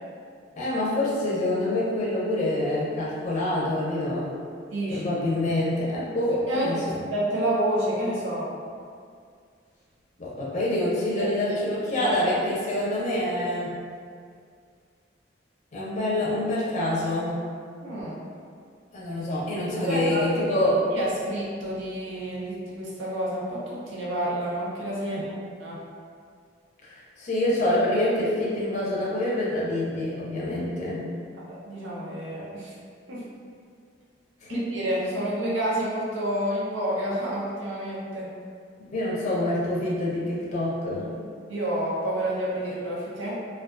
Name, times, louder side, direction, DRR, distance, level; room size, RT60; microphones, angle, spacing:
voice 1, 0.6-4.3 4.9-7.0 10.2-13.8 15.7-17.4 18.9-20.8 25.0-25.3 26.8-31.1 34.5-34.7 38.8-41.2, left 1 dB, 40° left, -7 dB, 0.5 m, -26 dB
voice 2, 4.7-5.1 6.2-8.5 11.2-11.6 11.9-12.3 17.8-18.2 19.5-20.6 20.9-25.8 31.5-32.7 33.1-33.2 34.5-38.3 41.5-43.4, right 1 dB, 85° right, -6 dB, 0.6 m, -29 dB
2.3 x 2.3 x 2.4 m, 2.2 s
head